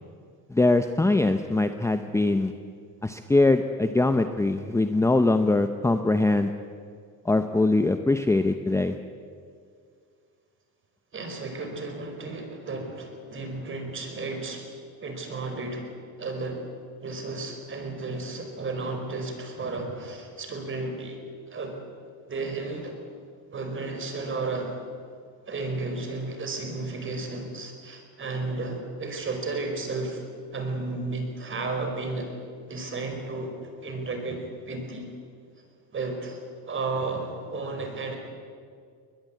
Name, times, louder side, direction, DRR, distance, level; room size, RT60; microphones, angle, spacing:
voice 1, 0.5-2.5 3.0-6.5 7.2-8.9, left 2 dB, 10° left, 8 dB, 0.8 m, -22 dB
voice 2, 11.1-14.7 15.0-15.9 16.2-16.7 17.0-21.2 21.5-21.8 22.3-23.0 23.5-24.8 25.5-30.2 30.5-32.3 32.7-35.1 35.9-38.2, right 3 dB, 35° right, 5 dB, 4.8 m, -33 dB
21.5 x 21.0 x 8.4 m, 2.2 s
cardioid pair, 130°, 37 cm